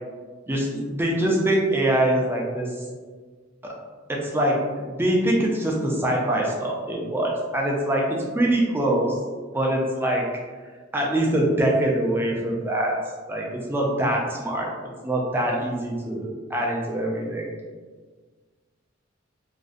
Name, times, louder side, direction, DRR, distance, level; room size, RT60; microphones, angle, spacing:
voice 1, 0.5-2.7 3.6-3.7 4.1-8.0 8.3-9.2 9.5-10.3 10.9-13.0 13.3-14.7 15.0-17.5, right 1 dB, 10° right, -2 dB, 0.3 m, -24 dB
2.5 x 2.0 x 2.4 m, 1.4 s
head